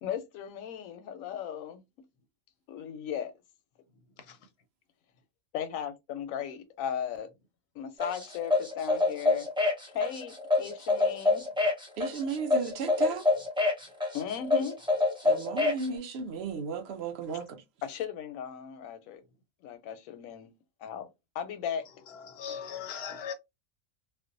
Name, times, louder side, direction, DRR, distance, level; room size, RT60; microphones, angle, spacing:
voice 1, 0.0-1.8 2.7-3.3 5.5-7.3 7.8-9.5 9.9-11.5 14.1-14.8 17.8-19.2 19.6-20.5 20.8-21.1 21.3-21.9, left 8 dB, 90° left, 1.0 m, -36 dB
sound 1, 8.0-15.9, left 3 dB, 5° right, 0.6 m, -26 dB
voice 2, 12.0-13.3 15.2-17.6, right 5 dB, 65° right, 0.7 m, -34 dB
voice 3, 22.1-23.3, left 8 dB, 65° left, 0.7 m, -39 dB
2.5 x 2.1 x 2.5 m
omnidirectional pair, 1.4 m